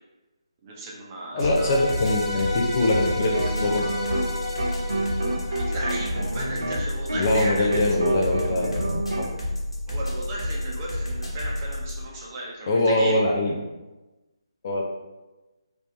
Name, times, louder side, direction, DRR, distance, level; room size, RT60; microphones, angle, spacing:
voice 1, 0.6-1.7 5.5-7.8 9.9-13.2, right 1 dB, 25° right, -5 dB, 0.9 m, -35 dB
voice 2, 1.3-3.9 7.2-9.3 12.7-13.5 14.6-14.8, left 1 dB, 35° left, -1 dB, 0.5 m, -23 dB
sound 1, 1.4-12.1, left 1 dB, 85° left, 1.1 m, -30 dB
sound 2, 1.4-6.6, left 2 dB, 15° left, 0.8 m, -33 dB
sound 3, 3.2-4.3 4.6-9.3, right 2 dB, 75° right, 0.6 m, -30 dB
3.3 x 2.6 x 3.1 m, 1.1 s
figure-of-eight pair, 150°, 3 cm